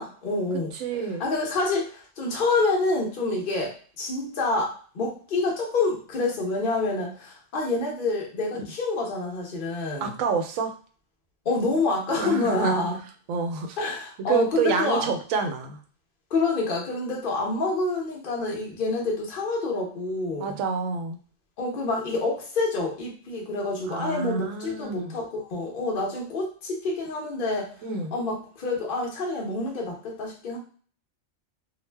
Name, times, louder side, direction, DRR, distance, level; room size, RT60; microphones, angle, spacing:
voice 1, 0.0-0.7 1.2-10.1 11.4-13.0 13.8-15.0 16.3-20.6 21.6-27.7 28.1-30.6, left 3 dB, 45° left, -1 dB, 0.9 m, -27 dB
voice 2, 0.7-1.2 8.5-8.6 10.0-10.7 12.2-12.9 13.3-13.8 14.3-15.8 20.4-21.2 23.9-25.2 27.8-28.1, right 5 dB, 85° right, 5 dB, 1.0 m, -28 dB
2.5 x 2.1 x 3.3 m, 0.43 s
omnidirectional pair, 1.4 m